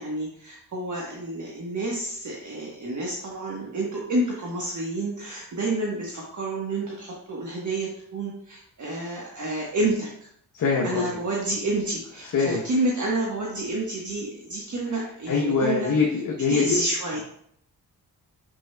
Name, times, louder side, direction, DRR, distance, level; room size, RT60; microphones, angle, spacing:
voice 1, 0.0-10.3 10.8-15.9 16.5-17.2, right 2 dB, 55° right, -3 dB, 1.2 m, -29 dB
voice 2, 10.5-11.1 12.2-12.6 15.3-16.8, left 4 dB, 60° left, -2 dB, 1.0 m, -23 dB
6.6 x 6.4 x 2.2 m, 0.69 s
cardioid pair, 90°, 36 cm